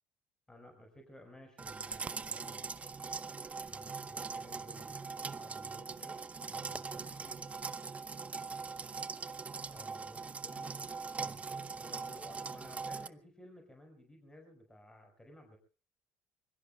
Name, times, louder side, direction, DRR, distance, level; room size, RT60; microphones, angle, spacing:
voice 1, 0.5-2.7 3.7-7.5 9.7-10.8 11.2-15.6, equal, 10° left, 3 dB, 4.7 m, -56 dB
sound 1, 1.6-13.1, right 4 dB, 20° right, 0.8 m, -41 dB
25.5 x 22.5 x 2.3 m, 0.37 s
cardioid pair, 125°, 6 cm